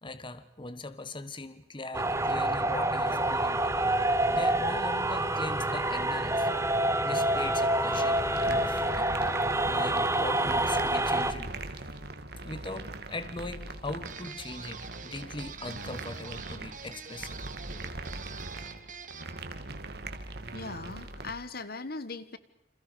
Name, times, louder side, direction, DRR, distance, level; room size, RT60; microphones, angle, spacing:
voice 1, 0.0-3.7 4.3-6.5 7.0-9.2 9.7-12.0 12.4-17.4, left 2 dB, 30° left, 11 dB, 1.4 m, -40 dB
sound 1, 1.9-11.3, right 1 dB, 15° right, 1.3 m, -27 dB
sound 2, 7.9-21.3, right 2 dB, 65° right, 2.5 m, -41 dB
sound 3, 14.1-19.4, right 6 dB, 45° right, 2.7 m, -45 dB
voice 2, 20.5-22.4, left 3 dB, 60° left, 13 dB, 1.6 m, -39 dB
29.5 x 28.0 x 5.2 m, 0.86 s
head